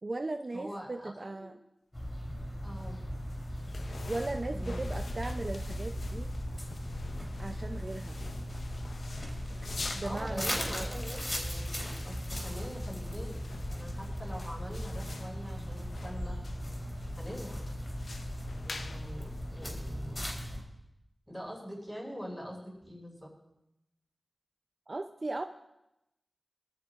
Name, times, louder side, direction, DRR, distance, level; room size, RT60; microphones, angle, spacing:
voice 1, 0.0-1.6 4.1-6.3 7.4-8.2 9.6-10.9 24.9-25.4, right 2 dB, 50° right, 5 dB, 0.6 m, -37 dB
voice 2, 0.5-1.5 2.6-3.0 4.5-4.8 10.0-16.4 17.1-17.6 18.6-20.2 21.3-23.3, equal, 5° left, -3 dB, 6.8 m, -44 dB
sound 1, 1.9-20.6, equal, 35° left, 3.8 m, -38 dB
sound 2, 2.2-20.1, left 3 dB, 75° left, 0.8 m, -47 dB
24.0 x 13.5 x 2.6 m, 0.89 s
cardioid pair, 45°, 0 cm